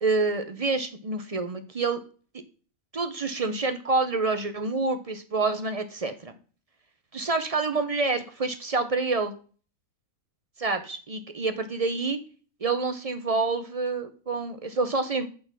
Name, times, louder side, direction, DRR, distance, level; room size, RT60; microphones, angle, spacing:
voice 1, 0.0-2.0 2.9-6.3 7.1-9.3 10.6-12.2 12.6-15.3, right 3 dB, 40° right, 8 dB, 0.5 m, -27 dB
8.6 x 3.9 x 6.0 m, 0.39 s
omnidirectional pair, 1.6 m